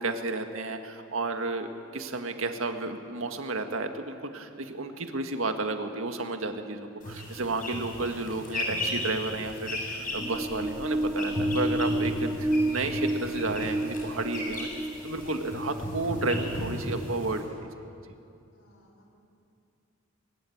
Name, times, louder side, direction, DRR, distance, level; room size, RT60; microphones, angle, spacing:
voice 1, 0.0-14.7 15.0-17.4, right 2 dB, 85° right, 6 dB, 1.8 m, -32 dB
sound 1, 7.0-17.4, left 1 dB, 40° left, 6.6 m, -36 dB
sound 2, 10.0-17.7, right 1 dB, 10° right, 0.5 m, -31 dB
voice 2, 18.5-19.2, equal, 65° left, 0 dB, 5.7 m, -61 dB
21.0 x 20.5 x 8.6 m, 2.6 s
head